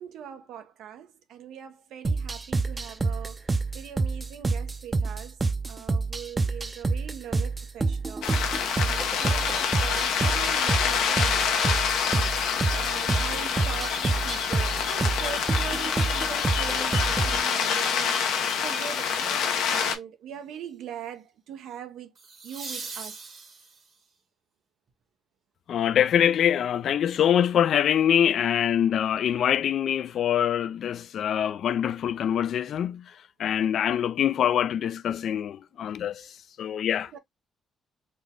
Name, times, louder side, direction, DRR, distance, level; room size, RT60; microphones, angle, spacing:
voice 1, 0.0-3.4 3.7-5.4 5.7-11.8 12.7-18.2 18.6-22.1 22.4-23.1 37.1-37.2, right 9 dB, 80° right, 0.7 m, -41 dB
sound 1, 2.0-17.4, right 3 dB, 25° right, 0.5 m, -28 dB
sound 2, 8.2-20.0, left 7 dB, 90° left, 0.7 m, -26 dB
sound 3, 22.1-24.0 26.9-27.0, right 4 dB, 50° right, 1.2 m, -40 dB
voice 2, 25.7-33.1 33.4-36.3 36.6-37.2, left 9 dB, 65° left, 0.3 m, -24 dB
3.9 x 2.2 x 3.5 m
cardioid pair, 90°, 0 cm